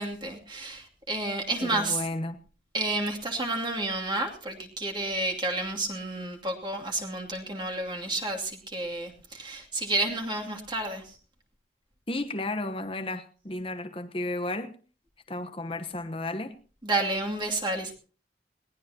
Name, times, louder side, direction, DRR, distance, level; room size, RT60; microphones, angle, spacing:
voice 1, 0.0-2.0 2.7-11.1 16.8-17.9, right 2 dB, 25° right, 2.7 m, -30 dB
voice 2, 1.6-2.4 12.1-14.7 15.3-16.5, left 2 dB, 30° left, 1.1 m, -33 dB
21.5 x 18.0 x 2.9 m
head